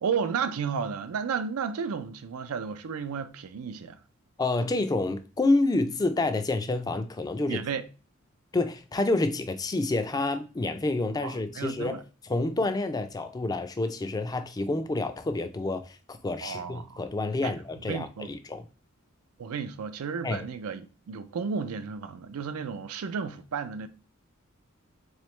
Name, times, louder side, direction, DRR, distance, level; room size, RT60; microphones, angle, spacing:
voice 1, 0.0-4.0 7.5-7.8 11.2-12.0 16.4-17.0 17.4-17.5 17.9-18.3 19.4-23.9, right 6 dB, 85° right, 0.4 m, -33 dB
voice 2, 4.4-7.6 8.5-12.0 12.3-18.7 20.2-20.4, left 2 dB, 15° left, 0.3 m, -28 dB
3.7 x 3.1 x 3.1 m
head